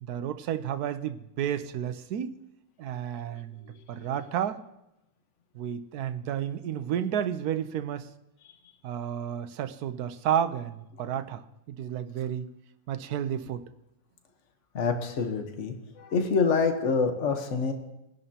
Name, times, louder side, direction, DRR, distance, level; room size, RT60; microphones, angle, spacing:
voice 1, 0.0-2.3 2.8-4.6 5.5-8.1 8.8-12.5 12.9-13.6, right 9 dB, 90° right, 11 dB, 1.3 m, -31 dB
voice 2, 14.7-17.7, left 4 dB, 55° left, 5 dB, 1.4 m, -27 dB
22.0 x 11.0 x 2.9 m, 0.88 s
omnidirectional pair, 1.6 m